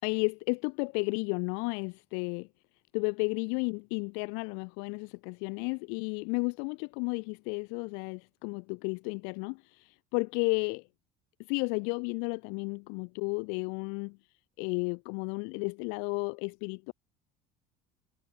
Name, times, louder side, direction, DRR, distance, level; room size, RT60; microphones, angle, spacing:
voice 1, 0.0-2.5 2.9-10.8 11.5-14.2 14.6-16.9, left 40 dB or more, 85° left, 4.5 m, -33 dB
cardioid pair, 170°, 19 cm